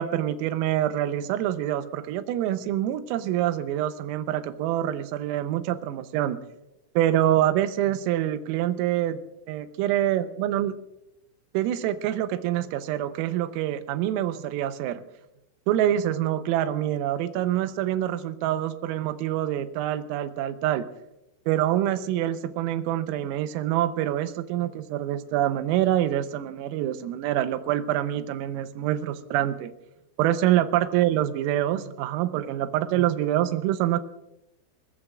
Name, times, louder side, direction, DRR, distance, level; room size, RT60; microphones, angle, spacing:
voice 1, 0.0-6.4 7.0-9.2 9.5-10.7 11.6-15.0 15.7-20.9 21.5-29.7 30.2-34.0, right 12 dB, 90° right, 10 dB, 3.5 m, -26 dB
25.0 x 21.5 x 2.4 m, 0.90 s
omnidirectional pair, 5.9 m